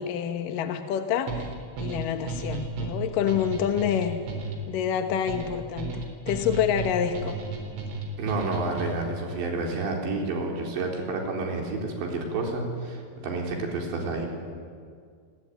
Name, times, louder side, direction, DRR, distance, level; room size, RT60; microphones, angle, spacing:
voice 1, 0.0-1.5 1.8-4.2 4.7-7.4, left 9 dB, 70° left, 7 dB, 2.1 m, -27 dB
sound 1, 1.3-9.2, right 3 dB, 85° right, 6.4 m, -34 dB
voice 2, 8.2-14.3, right 3 dB, 65° right, 1 dB, 6.0 m, -30 dB
30.0 x 19.5 x 9.4 m, 2.1 s
omnidirectional pair, 5.6 m